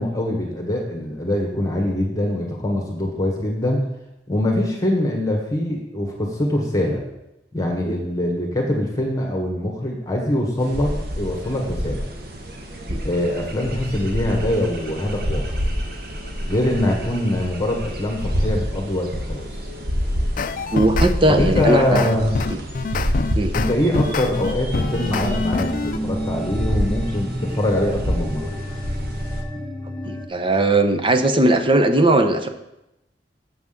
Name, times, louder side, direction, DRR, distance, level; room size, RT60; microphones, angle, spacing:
voice 1, 0.0-3.9 4.3-7.0 7.5-12.1 13.0-15.6 16.4-19.5 21.3-22.4 23.5-28.5, left 1 dB, 20° left, 0 dB, 1.5 m, -23 dB
sound 1, 10.6-29.4, equal, 60° right, 1.3 m, -28 dB
sound 2, 20.4-21.1 21.5-26.0, left 4 dB, 50° left, 0.4 m, -25 dB
voice 2, 20.7-22.1 22.5-22.6 23.4-23.5 30.0-32.5, right 2 dB, 30° right, 8 dB, 0.8 m, -18 dB
sound 3, 24.7-30.3, equal, 5° left, 0.7 m, -31 dB
7.8 x 6.0 x 7.4 m, 0.88 s
head